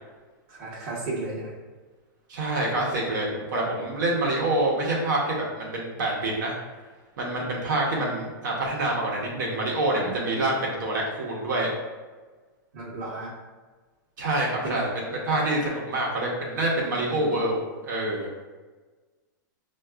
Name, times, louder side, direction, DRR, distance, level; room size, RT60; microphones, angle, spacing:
voice 1, 0.5-1.5 9.9-10.1 12.7-13.3 14.6-14.9 17.1-17.2, right 2 dB, 35° right, -5 dB, 0.9 m, -34 dB
voice 2, 2.3-6.5 7.2-11.7 14.2-17.6 17.9-18.3, right 2 dB, 65° right, -3 dB, 0.8 m, -26 dB
4.5 x 2.3 x 2.3 m, 1.3 s
supercardioid pair, 170°, 11 cm